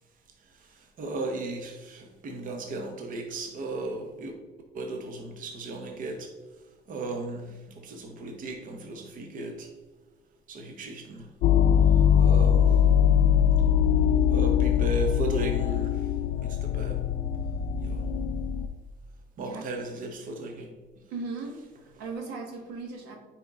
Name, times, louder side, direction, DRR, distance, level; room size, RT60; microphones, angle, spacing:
voice 1, 0.7-4.3 4.7-6.3 6.9-9.7 10.5-11.3 12.2-12.8 14.3-16.1 16.4-17.0 17.8-18.0 19.4-20.7, right 2 dB, 55° right, 3 dB, 1.1 m, -35 dB
sound 1, 11.4-18.7, left 9 dB, 75° left, 0.4 m, -22 dB
voice 2, 21.1-23.2, right 3 dB, 90° right, 2 dB, 1.5 m, -37 dB
9.5 x 4.5 x 3.6 m, 1.3 s
cardioid pair, 110°, 17 cm